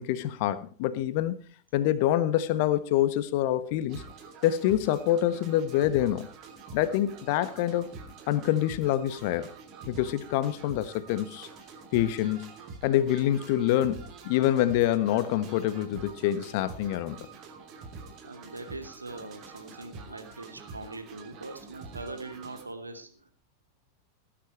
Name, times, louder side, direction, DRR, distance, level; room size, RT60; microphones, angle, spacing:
voice 1, 0.0-1.4 1.7-4.0 4.4-6.3 6.7-7.9 8.3-9.5 9.9-11.5 11.9-12.5 12.8-17.2, left 12 dB, 50° left, 1.4 m, -26 dB
sound 1, 3.9-22.6, right 4 dB, 35° right, 3.3 m, -46 dB
voice 2, 18.2-23.3, right 2 dB, 80° right, 2.5 m, -42 dB
18.5 x 10.5 x 4.4 m
figure-of-eight pair, 90°, 0 cm